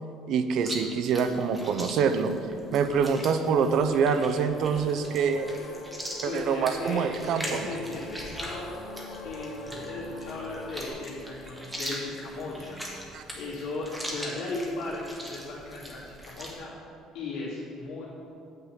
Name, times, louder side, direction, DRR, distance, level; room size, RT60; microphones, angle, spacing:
voice 1, 0.3-2.3 2.7-5.6 6.2-7.6 13.1-13.2, right 6 dB, 55° right, 9 dB, 0.6 m, -25 dB
Chewing mastication, 0.6-16.5, equal, 5° right, 1.2 m, -41 dB
sound 1, 3.5-10.9, left 3 dB, 90° left, 1.6 m, -45 dB
sound 2, 4.5-13.2, equal, 30° left, 1.9 m, -48 dB
voice 2, 6.2-8.7 9.2-12.8 13.2-16.7 17.1-18.1, left 2 dB, 70° left, -7 dB, 2.7 m, -36 dB
9.1 x 5.5 x 7.5 m, 2.6 s
cardioid pair, 175°, 0 cm